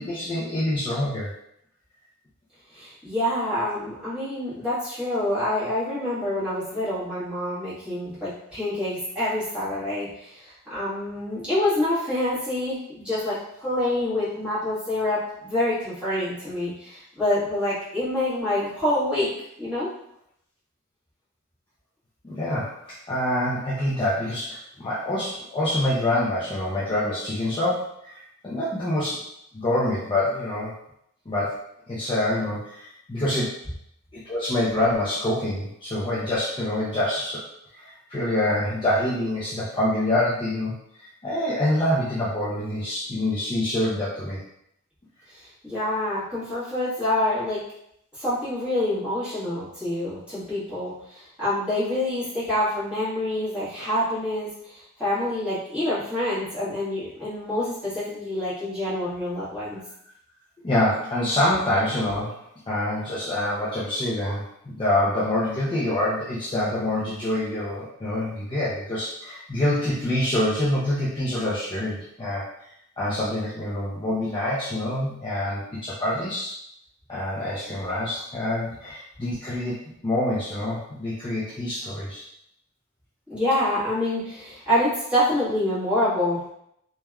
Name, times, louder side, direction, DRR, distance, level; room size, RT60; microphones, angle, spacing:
voice 1, 0.0-1.3 22.2-29.2 29.5-30.7 31.3-31.6 31.9-33.5 34.2-37.4 37.7-40.7 41.0-44.4 60.6-62.4 62.7-72.4 73.0-76.5 77.1-79.7 80.0-82.2, left 1 dB, 20° left, -9 dB, 0.5 m, -26 dB
voice 2, 2.7-19.3 19.6-19.9 45.3-47.6 48.1-59.8 83.3-86.5, left 1 dB, 5° right, -13 dB, 1.4 m, -27 dB
3.3 x 2.2 x 2.3 m, 0.75 s
head